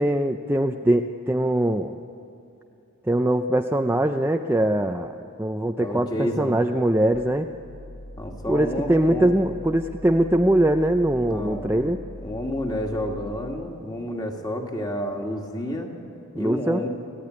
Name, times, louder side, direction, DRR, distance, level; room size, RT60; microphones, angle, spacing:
voice 1, 0.0-2.0 3.1-5.1 5.4-7.5 8.5-12.0 16.4-16.8, right 1 dB, 10° right, 5 dB, 0.5 m, -22 dB
voice 2, 5.8-6.6 8.2-9.3 11.3-11.8 12.2-15.9 16.4-16.9, equal, 20° left, 2 dB, 2.1 m, -30 dB
sound 1, 7.1-13.3, left 1 dB, 85° left, 4.2 m, -41 dB
25.5 x 16.5 x 9.7 m, 2.7 s
head